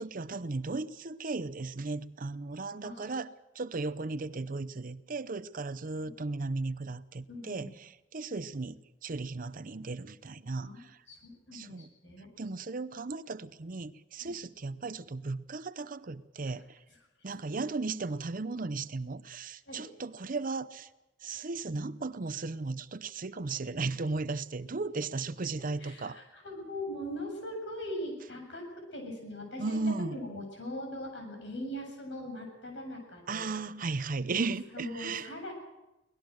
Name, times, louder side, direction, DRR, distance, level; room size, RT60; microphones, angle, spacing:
voice 1, 0.0-3.3 3.6-11.0 11.5-11.9 12.4-16.8 17.2-20.9 21.2-26.2 29.6-30.2 33.3-35.3, right 3 dB, 45° right, 14 dB, 0.7 m, -36 dB
voice 2, 7.3-7.7 10.5-12.3 14.2-14.3 16.4-16.5 16.9-17.0 19.7-19.8 21.3-21.4 25.8-33.5 33.8-34.0 34.4-35.5, left 1 dB, 70° left, 3 dB, 7.6 m, -41 dB
24.0 x 19.0 x 6.4 m, 0.95 s
head